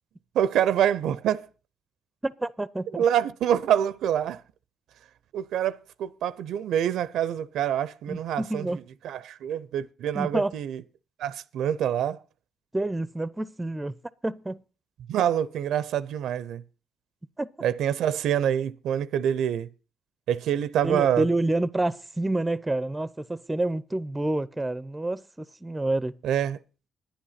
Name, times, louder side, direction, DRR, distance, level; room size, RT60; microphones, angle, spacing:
voice 1, 0.3-1.5 2.9-4.4 5.3-8.7 9.0-10.8 11.2-12.2 15.1-16.6 17.6-19.7 20.3-21.2 26.2-26.6, right 10 dB, 80° right, 0.5 m, -26 dB
voice 2, 2.2-3.0 8.1-8.8 10.1-10.5 12.7-13.9 14.2-14.6 17.4-17.5 20.8-26.1, right 2 dB, 15° right, 0.5 m, -28 dB
10.0 x 10.0 x 5.7 m
cardioid pair, 90°, 0 cm